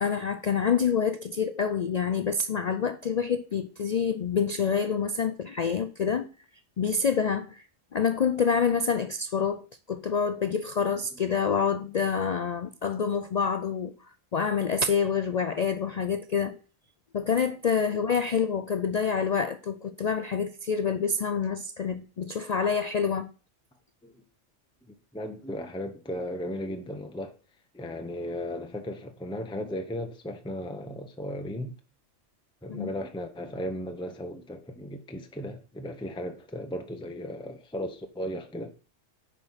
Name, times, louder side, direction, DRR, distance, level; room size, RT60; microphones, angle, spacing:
voice 1, 0.0-6.3 6.8-7.6 7.9-13.9 14.3-16.6 17.1-23.3 32.7-32.9, left 6 dB, 85° left, 0.3 m, -27 dB
voice 2, 25.1-27.4 27.7-31.7 32.6-38.7, equal, 5° left, 0.8 m, -36 dB
8.9 x 4.9 x 5.7 m
omnidirectional pair, 1.3 m